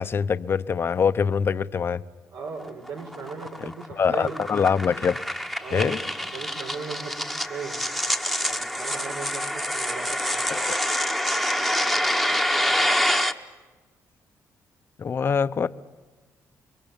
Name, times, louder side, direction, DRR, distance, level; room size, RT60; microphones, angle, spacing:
voice 1, 0.0-2.0 3.9-5.2 5.7-6.0 10.5-10.8 15.0-15.7, left 6 dB, 40° left, 0.8 m, -24 dB
voice 2, 2.3-4.4 5.6-7.8 8.4-10.8, right 5 dB, 80° right, 4.7 m, -37 dB
sound 1, 2.6-13.3, equal, ahead, 1.2 m, -26 dB
29.5 x 23.0 x 7.2 m
cardioid pair, 125°, 6 cm